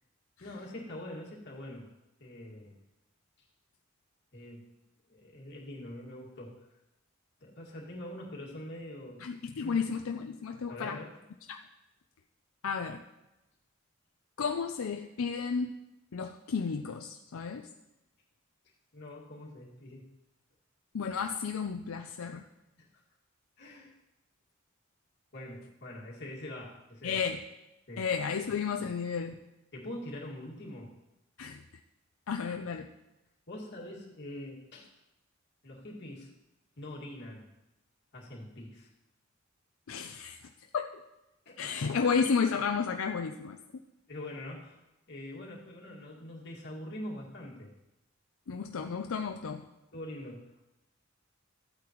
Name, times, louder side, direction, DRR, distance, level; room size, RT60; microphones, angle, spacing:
voice 1, 0.4-1.9 2.2-2.8 4.3-4.7 5.1-6.6 7.4-9.3 9.6-9.9 10.7-11.1 18.9-20.1 22.8-23.0 23.6-23.9 25.3-27.2 27.9-28.1 28.8-28.9 29.7-31.0 33.5-34.9 35.6-36.3 36.8-37.5 38.1-38.9 41.5-41.6 44.1-44.8 45.1-47.7 49.9-50.7, left 1 dB, 55° left, -3 dB, 2.2 m, -44 dB
voice 2, 9.2-11.0 11.5-11.6 12.6-13.0 14.4-15.8 16.1-17.7 20.9-22.4 27.0-27.4 28.0-29.4 31.4-31.6 32.3-32.9 39.9-40.4 40.7-40.9 41.6-43.6 48.5-49.6, left 5 dB, 85° left, 4 dB, 0.5 m, -32 dB
14.5 x 8.5 x 3.1 m, 0.95 s
head